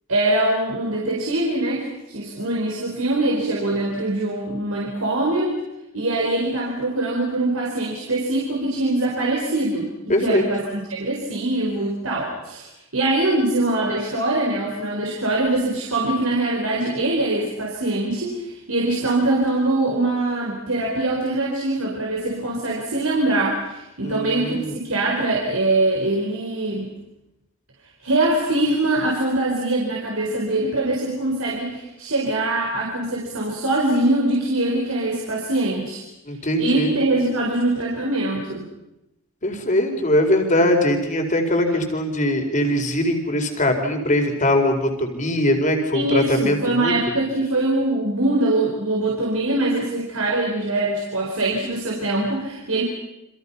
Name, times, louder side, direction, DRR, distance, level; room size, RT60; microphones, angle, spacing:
voice 1, 0.1-5.6 5.9-9.9 10.2-26.9 28.0-36.0 36.6-38.7 45.9-52.8, right 2 dB, 80° right, -2 dB, 4.8 m, -23 dB
voice 2, 10.1-10.5 24.0-24.7 36.3-37.0 39.4-46.9, left 1 dB, 35° left, 4 dB, 4.3 m, -21 dB
29.5 x 26.5 x 5.7 m, 0.89 s
head